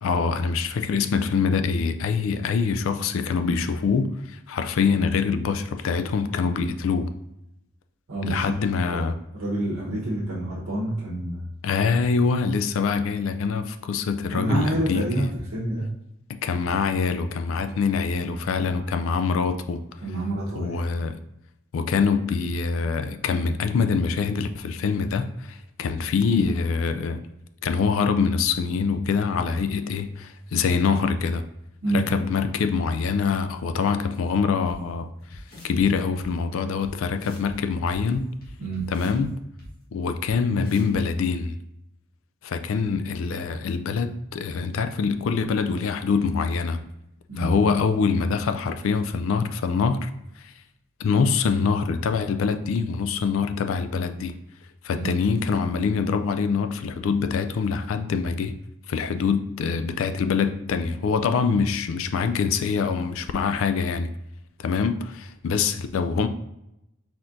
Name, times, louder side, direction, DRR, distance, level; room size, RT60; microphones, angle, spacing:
voice 1, 0.0-7.1 8.2-9.1 11.6-15.0 16.3-19.8 20.6-21.2 21.7-27.2 27.6-31.4 31.9-38.2 38.9-39.4 39.9-41.6 42.4-46.8 47.4-50.1 50.4-50.5 51.0-54.3 54.8-58.5 58.9-64.1 64.6-66.3, left 5 dB, 70° left, 0.3 m, -24 dB
voice 2, 8.1-8.4 8.8-9.0 9.3-11.5 14.3-15.9 17.6-17.8 18.6-18.9 20.0-20.9 31.8-32.1 38.6-38.8 47.3-47.5 54.9-55.1, right 1 dB, 85° right, 1.1 m, -28 dB
sound 1, 34.7-34.8 35.3-35.8 36.2-36.3 36.8-36.9 37.2-37.5 37.9-39.2 39.6-39.7 40.2-40.3 40.6-41.0, left 1 dB, 45° left, 1.5 m, -44 dB
4.3 x 4.2 x 2.5 m
head